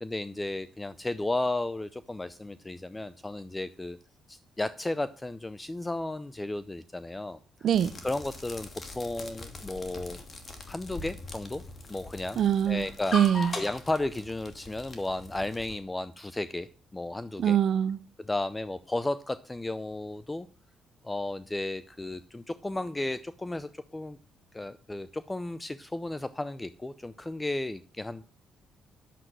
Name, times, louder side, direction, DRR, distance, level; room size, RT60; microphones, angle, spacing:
voice 1, 0.0-4.0 4.3-7.4 8.0-10.2 10.7-11.6 11.9-12.4 12.7-13.2 13.6-17.6 18.3-20.5 21.0-24.2 24.5-28.2, left 2 dB, 15° left, 0.6 m, -34 dB
sound 1, 7.7-15.8, left 2 dB, 35° left, 2.6 m, -41 dB
voice 2, 12.4-12.9 13.1-13.5 17.4-18.0, right 9 dB, 65° right, 0.6 m, -23 dB
10.0 x 7.8 x 6.1 m
cardioid pair, 90°, 0 cm